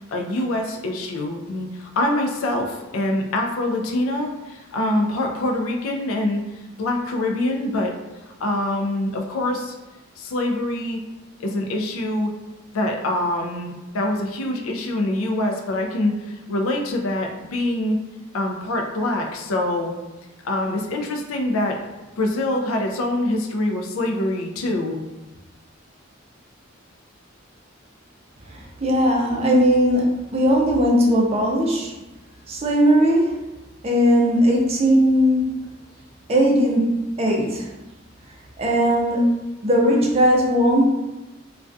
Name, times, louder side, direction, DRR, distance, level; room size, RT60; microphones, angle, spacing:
voice 1, 0.1-6.4 6.8-7.9 8.4-9.7 10.2-11.0 11.4-12.3 12.7-18.0 18.3-19.9 20.4-21.8 22.2-25.0, left 1 dB, 90° left, 2 dB, 0.4 m, -24 dB
voice 2, 28.5-31.9 32.5-33.4 33.8-35.7 36.3-37.7 38.6-40.8, equal, 30° right, -1 dB, 0.4 m, -19 dB
2.2 x 2.2 x 2.5 m, 1.1 s
head